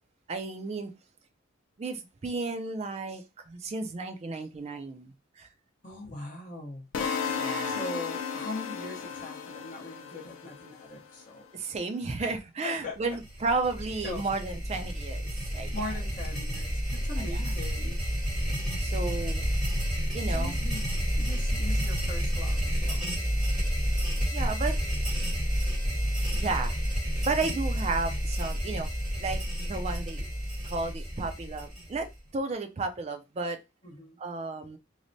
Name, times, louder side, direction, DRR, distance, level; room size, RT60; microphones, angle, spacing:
voice 1, 0.3-0.9 1.8-5.5 7.3-7.8 11.5-15.7 17.2-17.4 18.8-19.4 20.1-20.6 24.2-24.8 26.3-26.8 27.2-28.9 29.2-30.3 30.6-33.6 34.2-34.8, right 3 dB, 30° right, 0.3 m, -33 dB
voice 2, 5.8-6.9 7.6-11.5 12.2-12.4 12.6-13.0 14.0-14.3 15.7-18.0 20.3-20.9 21.2-23.1 33.8-34.2, left 2 dB, 40° left, 0.7 m, -40 dB
sound 1, 6.9-11.0, left 6 dB, 70° left, 0.4 m, -34 dB
sound 2, 13.1-32.2, equal, 5° right, 1.1 m, -30 dB
3.1 x 2.0 x 2.6 m
head